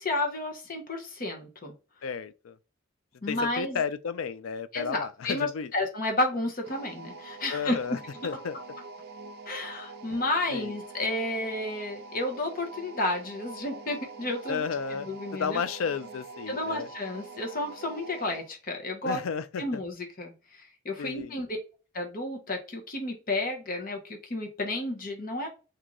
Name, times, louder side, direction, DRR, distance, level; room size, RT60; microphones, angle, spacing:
voice 1, 0.0-1.7 3.2-3.8 4.7-8.0 9.5-15.6 16.5-19.2 19.6-21.6 21.9-24.0 24.3-25.5, left 2 dB, 45° left, 1.0 m, -31 dB
voice 2, 2.0-2.6 3.3-5.7 7.5-8.6 10.5-10.7 14.5-15.1 15.3-16.9 19.0-19.6 21.0-21.4, left 6 dB, 85° left, 0.4 m, -33 dB
sound 1, 6.6-18.5, right 3 dB, 50° right, 0.6 m, -45 dB
3.8 x 2.7 x 3.0 m
head